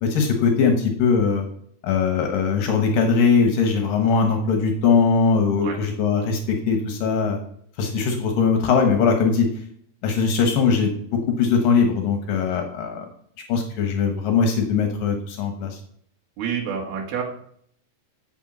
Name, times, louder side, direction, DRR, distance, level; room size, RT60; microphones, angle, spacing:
voice 1, 0.0-1.5 1.8-7.4 7.8-9.5 10.0-13.1 13.5-15.8, left 5 dB, 70° left, 4 dB, 2.7 m, -20 dB
voice 2, 16.4-17.2, right 7 dB, 85° right, 0 dB, 3.6 m, -28 dB
8.3 x 8.1 x 6.0 m, 0.65 s
omnidirectional pair, 4.3 m